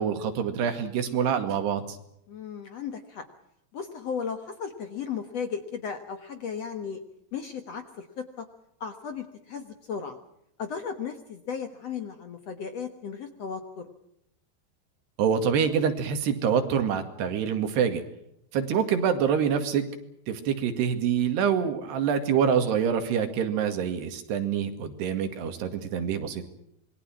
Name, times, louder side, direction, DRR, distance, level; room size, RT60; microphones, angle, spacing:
voice 1, 0.0-2.0 15.2-18.0 18.5-19.9 20.3-26.4, right 7 dB, 90° right, 7 dB, 4.2 m, -26 dB
voice 2, 2.3-3.3 3.7-7.0 7.3-8.4 8.8-10.2 10.6-13.9, left 6 dB, 55° left, 7 dB, 1.9 m, -35 dB
27.0 x 22.0 x 6.1 m, 0.77 s
omnidirectional pair, 4.7 m